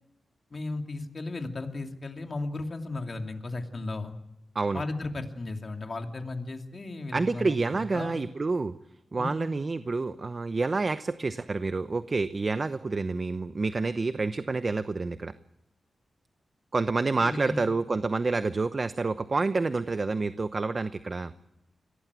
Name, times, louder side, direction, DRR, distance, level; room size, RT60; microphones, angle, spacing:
voice 1, 0.5-4.1 4.7-8.2 9.2-9.5 17.2-17.7, left 2 dB, 45° left, 4 dB, 2.7 m, -35 dB
voice 2, 7.1-8.7 9.1-15.3 16.7-21.3, right 3 dB, 45° right, 12 dB, 0.9 m, -28 dB
24.0 x 18.0 x 8.3 m, 0.89 s
cardioid pair, 65°, 0 cm